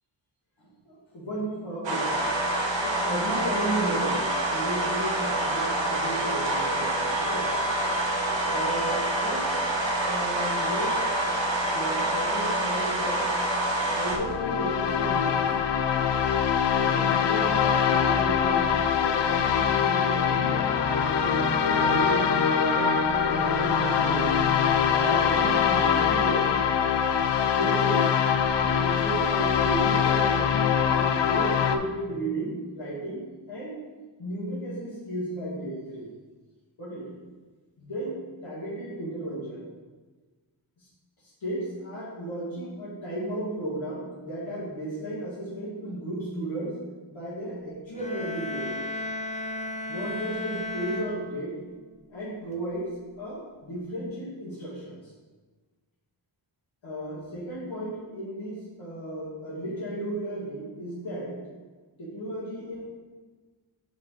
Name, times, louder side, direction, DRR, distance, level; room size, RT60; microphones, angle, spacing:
voice 1, 0.6-2.3 2.8-7.5 8.5-9.5 10.0-11.0 11.7-13.3 14.0-15.7 16.8-20.8 21.1-24.3 24.9-26.5 27.4-28.1 28.6-33.8 34.2-36.1 36.8-37.1 37.8-39.7 40.8-40.9 41.2-46.8 47.1-48.8 49.9-51.6 52.1-52.9 53.2-55.0 56.8-61.5 62.0-62.8, right 1 dB, 85° left, -9 dB, 1.9 m, -34 dB
sound 1, 1.8-14.2, right 1 dB, 70° right, 1.0 m, -27 dB
sound 2, 14.1-31.8, left 7 dB, 65° left, 0.5 m, -23 dB
sound 3, 47.9-51.8, left 2 dB, 15° left, 0.5 m, -34 dB
8.3 x 3.3 x 3.8 m, 1.3 s
wide cardioid pair, 110°, 45 cm